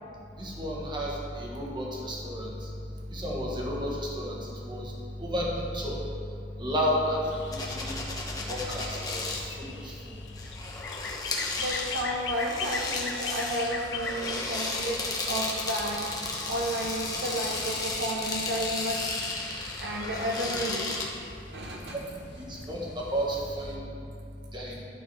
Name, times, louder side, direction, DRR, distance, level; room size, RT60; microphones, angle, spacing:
voice 1, 0.4-2.7 3.1-4.9 5.2-6.0 6.6-7.9 8.5-10.2 21.9-22.1 22.5-23.9 24.5-24.8, equal, 25° right, -3 dB, 1.6 m, -32 dB
sound 1, 7.2-23.8, left 4 dB, 90° left, 0.7 m, -42 dB
sound 2, 7.5-9.4 10.3-21.1, left 3 dB, 20° left, 1.1 m, -34 dB
voice 2, 11.6-16.1 16.5-19.2 19.8-20.9 21.5-22.0, right 1 dB, 70° right, -1 dB, 0.9 m, -32 dB
11.5 x 6.4 x 4.1 m, 2.5 s
head